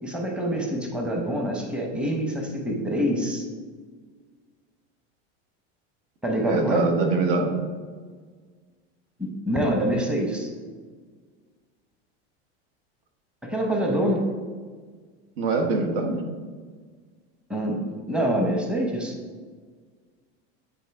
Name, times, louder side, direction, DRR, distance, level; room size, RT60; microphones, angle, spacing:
voice 1, 0.0-3.4 6.2-6.9 9.2-10.5 13.4-14.2 17.5-19.1, equal, 5° right, 1 dB, 0.9 m, -26 dB
voice 2, 6.4-7.5 15.4-16.2, right 3 dB, 60° right, 3 dB, 1.2 m, -24 dB
9.2 x 4.0 x 3.5 m, 1.5 s
supercardioid pair, 125°, 33 cm